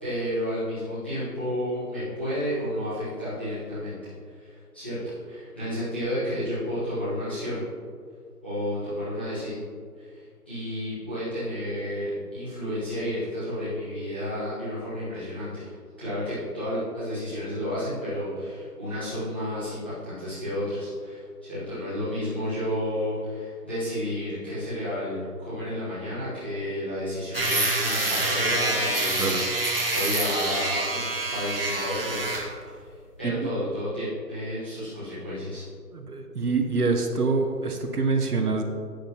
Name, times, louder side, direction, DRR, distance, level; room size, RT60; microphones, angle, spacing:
voice 1, 0.0-7.7 8.4-9.6 10.0-15.7 16.0-29.7 29.9-32.2 32.6-32.8 33.2-35.6, equal, 5° left, -17 dB, 1.2 m, -31 dB
sound 1, 27.3-32.5, right 2 dB, 35° right, 1.0 m, -26 dB
voice 2, 35.9-38.6, right 4 dB, 70° right, 4 dB, 1.2 m, -25 dB
10.5 x 7.9 x 2.9 m, 2.1 s
figure-of-eight pair, 170°, 48 cm